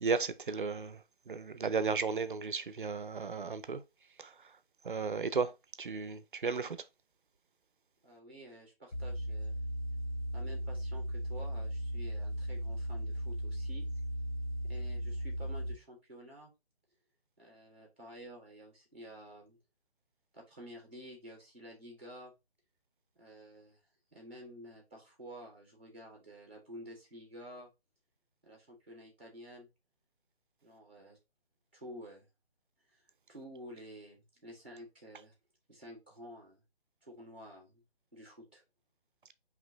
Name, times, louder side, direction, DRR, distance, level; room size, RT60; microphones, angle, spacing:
voice 1, 0.0-1.0 1.3-3.8 4.8-5.5 5.8-6.8, right 5 dB, 55° right, 0.4 m, -34 dB
voice 2, 8.0-9.6 10.3-13.9 14.6-16.5 17.4-19.6 20.3-22.3 23.2-23.8 24.1-27.7 28.4-29.7 30.6-31.2 31.7-32.2 32.9-33.0 33.3-34.2 34.4-35.3 35.7-36.6 37.0-37.8 38.1-38.6, equal, 10° right, 0.8 m, -51 dB
sound 1, 8.9-15.7, equal, 80° left, 1.6 m, -37 dB
4.0 x 2.9 x 3.8 m
hypercardioid pair, 180°, 31 cm